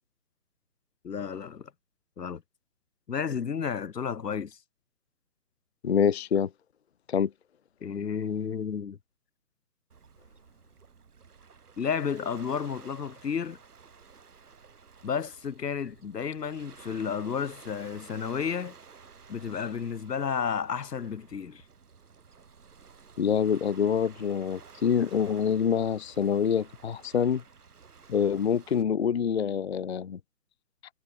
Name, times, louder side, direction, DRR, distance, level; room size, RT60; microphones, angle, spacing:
voice 1, 1.0-1.7 2.2-2.4 3.1-4.5 7.8-9.0 11.8-13.6 15.0-18.7 19.3-21.6, left 7 dB, 85° left, 1.0 m, -32 dB
voice 2, 5.8-6.5 7.1-7.3 23.2-27.4 28.1-30.2, left 7 dB, 45° left, 0.5 m, -26 dB
Waves surf, 9.9-28.8, right 5 dB, 70° right, 2.7 m, -53 dB
figure-of-eight pair, 145°, 47 cm